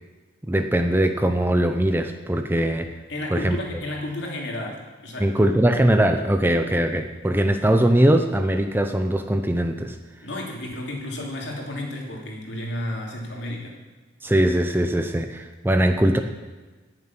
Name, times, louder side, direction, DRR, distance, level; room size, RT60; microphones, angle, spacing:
voice 1, 0.5-2.9 3.3-3.6 5.2-10.0 14.2-16.2, right 1 dB, 10° right, 6 dB, 0.6 m, -21 dB
voice 2, 3.1-5.3 10.2-13.7, left 1 dB, 65° left, 0 dB, 2.8 m, -32 dB
18.0 x 7.3 x 6.0 m, 1.3 s
head